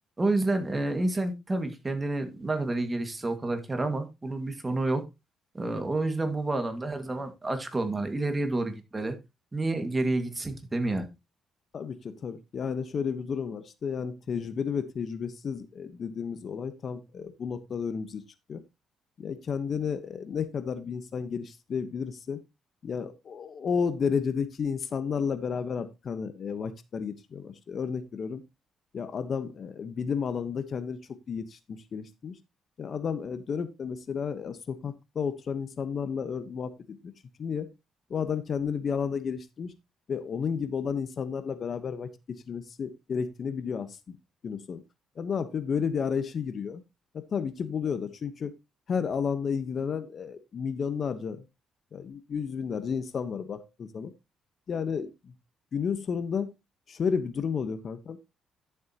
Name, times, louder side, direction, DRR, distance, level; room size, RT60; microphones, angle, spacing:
voice 1, 0.2-5.0 5.5-9.2 9.5-11.1, right 2 dB, 20° right, 1.9 m, -29 dB
voice 2, 11.7-18.2 18.5-18.6 19.2-22.4 22.8-28.4 28.9-31.0 31.3-32.4 32.8-37.1 37.4-37.7 38.1-39.7 40.1-44.2 44.4-44.8 45.2-46.8 47.1-48.5 48.9-51.4 51.9-54.1 54.7-55.3 55.7-56.5 56.9-58.2, left 6 dB, 50° left, 1.1 m, -32 dB
12.0 x 7.3 x 2.9 m
cardioid pair, 90°, 0 cm